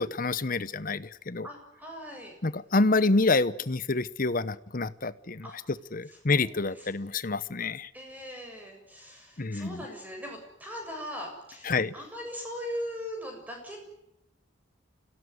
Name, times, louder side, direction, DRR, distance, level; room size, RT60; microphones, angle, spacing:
voice 1, 0.0-1.5 2.4-5.5 5.9-7.9 9.4-9.8 11.7-11.9, left 3 dB, 45° left, 16 dB, 0.9 m, -27 dB
voice 2, 1.4-2.3 5.4-5.6 6.3-6.9 7.9-13.8, equal, 10° right, 2 dB, 7.2 m, -40 dB
26.0 x 17.5 x 9.6 m, 0.82 s
head